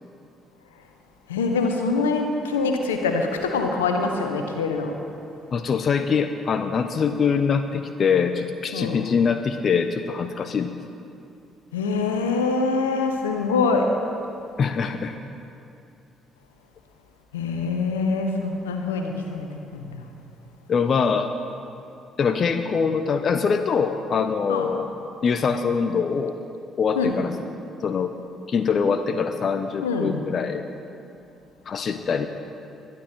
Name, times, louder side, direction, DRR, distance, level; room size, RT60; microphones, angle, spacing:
voice 1, 1.3-4.9 8.7-9.0 11.7-13.9 17.3-19.5 19.7-20.0 24.5-24.7 26.9-27.2 29.8-30.2, left 4 dB, 85° left, 4 dB, 1.1 m, -24 dB
voice 2, 5.5-10.7 14.6-15.2 20.7-21.3 22.2-24.9 25.2-26.4 26.8-27.3 27.8-28.1 28.5-30.6 31.7-32.3, left 6 dB, 50° left, 8 dB, 0.8 m, -23 dB
21.0 x 11.5 x 4.5 m, 2.7 s
hypercardioid pair, 45°, 0 cm